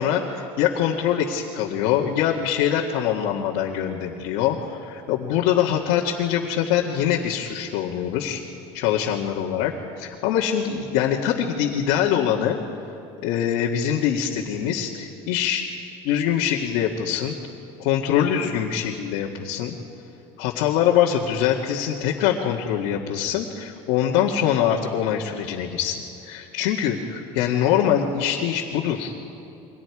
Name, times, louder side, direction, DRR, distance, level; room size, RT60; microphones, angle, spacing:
voice 1, 0.0-8.4 8.7-9.7 10.0-12.6 13.2-15.6 16.0-17.4 17.8-19.8 20.4-29.1, left 9 dB, 75° left, -3 dB, 1.9 m, -23 dB
29.5 x 23.5 x 4.9 m, 2.8 s
cardioid pair, 155°, 13 cm